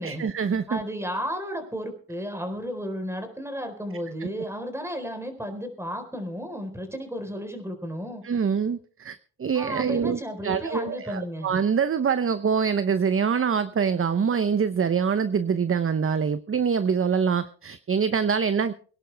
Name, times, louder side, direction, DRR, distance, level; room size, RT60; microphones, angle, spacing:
voice 1, 0.0-0.8 4.2-4.3 8.2-18.7, right 6 dB, 30° right, 12 dB, 0.8 m, -25 dB
voice 2, 0.7-8.2 9.5-11.5, equal, 5° right, 6 dB, 4.2 m, -33 dB
23.5 x 11.0 x 3.4 m, 0.42 s
cardioid pair, 85°, 45 cm